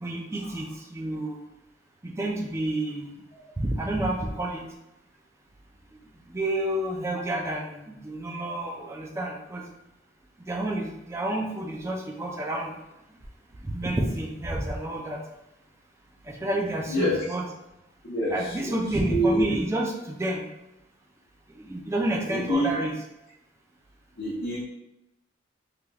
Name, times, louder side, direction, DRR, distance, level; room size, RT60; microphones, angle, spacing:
voice 1, 0.0-1.4 2.0-3.1 3.6-4.6 6.3-9.6 10.5-12.8 13.6-15.2 16.3-17.4 18.3-20.5 21.6-22.9, right 1 dB, 15° right, 0 dB, 0.4 m, -29 dB
voice 2, 16.9-17.2 18.0-18.8 19.1-19.5 22.3-22.7 24.2-24.6, equal, 55° left, -10 dB, 0.8 m, -26 dB
3.4 x 2.9 x 2.3 m, 0.91 s
head